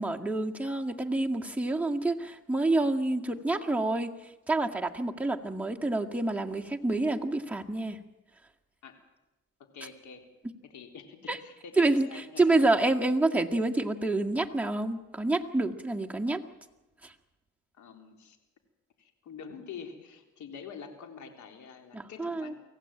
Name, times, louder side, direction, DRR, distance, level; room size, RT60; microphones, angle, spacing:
voice 1, 0.0-4.1 4.5-8.0 11.3-11.4 11.8-16.4 17.0-17.1 21.9-22.5, right 2 dB, 5° right, 1 dB, 2.0 m, -28 dB
voice 2, 9.7-10.3 10.6-12.7 17.8-18.4 19.0-22.6, left 6 dB, 70° left, 5 dB, 3.8 m, -46 dB
24.5 x 16.5 x 8.9 m, 1.0 s
cardioid pair, 90°, 30 cm